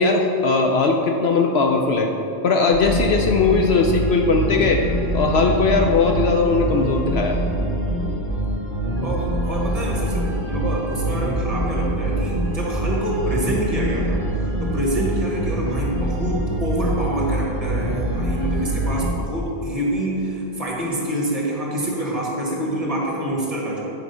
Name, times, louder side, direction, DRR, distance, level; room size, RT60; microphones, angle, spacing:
voice 1, 0.0-2.1 2.4-4.9 5.1-7.4, left 4 dB, 65° left, 3 dB, 0.7 m, -19 dB
sound 1, 2.7-19.1, right 1 dB, 10° right, 1.3 m, -24 dB
voice 2, 9.0-23.8, right 1 dB, 30° right, -3 dB, 1.5 m, -26 dB
8.7 x 4.9 x 5.5 m, 3.0 s
omnidirectional pair, 1.3 m